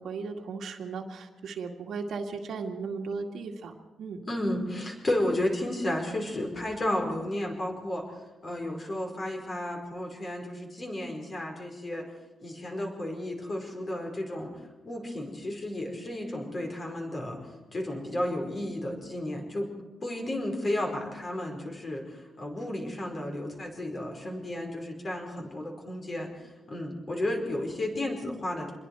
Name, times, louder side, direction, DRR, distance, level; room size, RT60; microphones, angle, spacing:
voice 1, 0.0-4.2, right 4 dB, 75° right, 3 dB, 2.1 m, -36 dB
voice 2, 4.3-8.0 8.4-12.0 12.4-14.6 14.8-17.4 17.7-19.7 20.0-28.7, left 1 dB, 30° left, 2 dB, 4.9 m, -33 dB
26.5 x 21.5 x 4.8 m, 1.2 s
wide cardioid pair, 145°, 0 cm